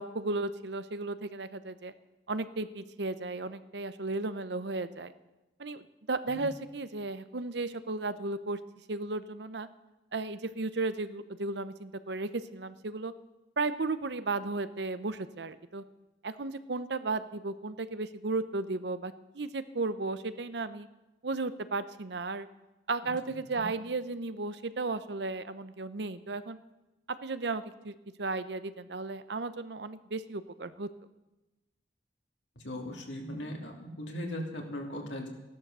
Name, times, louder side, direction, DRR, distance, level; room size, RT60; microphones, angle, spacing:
voice 1, 0.0-1.9 2.3-5.1 5.6-8.6 8.9-9.7 10.1-13.1 13.6-15.8 16.2-20.9 21.2-22.5 22.9-26.6 27.2-30.9, right 3 dB, 70° right, 13 dB, 0.8 m, -34 dB
voice 2, 32.6-35.3, left 1 dB, 85° left, 1 dB, 2.9 m, -38 dB
15.5 x 11.5 x 6.8 m, 1.0 s
head